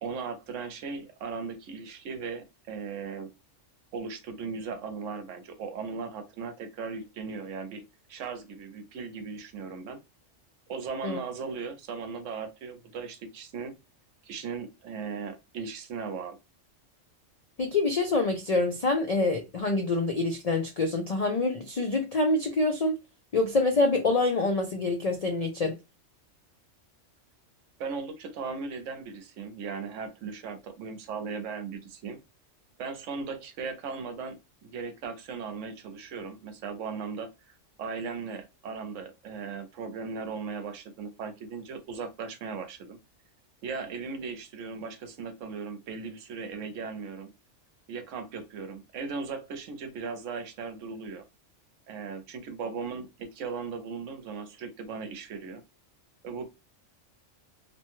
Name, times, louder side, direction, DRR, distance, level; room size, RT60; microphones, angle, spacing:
voice 1, 0.0-3.3 3.9-7.8 8.1-10.0 10.7-13.7 14.2-16.4 27.8-32.2 32.8-37.3 37.8-43.0 43.6-47.3 47.9-51.3 51.9-55.6 56.2-56.4, right 5 dB, 80° right, 1.0 m, -37 dB
voice 2, 17.6-22.9 23.3-25.8, left 2 dB, 65° left, 0.3 m, -26 dB
2.9 x 2.2 x 2.9 m
omnidirectional pair, 1.3 m